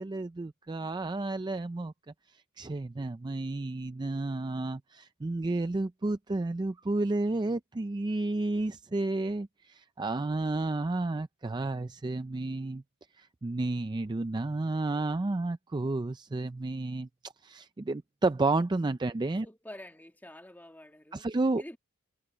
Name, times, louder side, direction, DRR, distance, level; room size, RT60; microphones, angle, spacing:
voice 1, 0.0-1.9 2.6-12.8 13.2-19.5 21.1-21.6, right 2 dB, 20° right, 0.4 m, -31 dB
voice 2, 19.4-21.3 21.6-21.8, left 1 dB, 10° left, 1.9 m, -47 dB
head